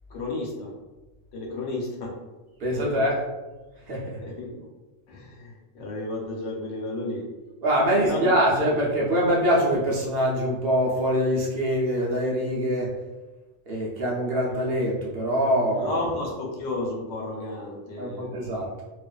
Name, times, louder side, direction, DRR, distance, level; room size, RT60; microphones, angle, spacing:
voice 1, 0.1-0.7 1.3-2.1 2.7-2.9 4.2-4.6 5.1-7.3 8.0-8.2 15.8-18.5, left 2 dB, 85° left, -1 dB, 1.0 m, -32 dB
voice 2, 2.6-3.2 3.9-4.2 7.6-12.9 13.7-16.0 18.0-18.8, equal, 60° right, -4 dB, 0.8 m, -24 dB
2.4 x 2.4 x 2.2 m, 1.2 s
omnidirectional pair, 1.2 m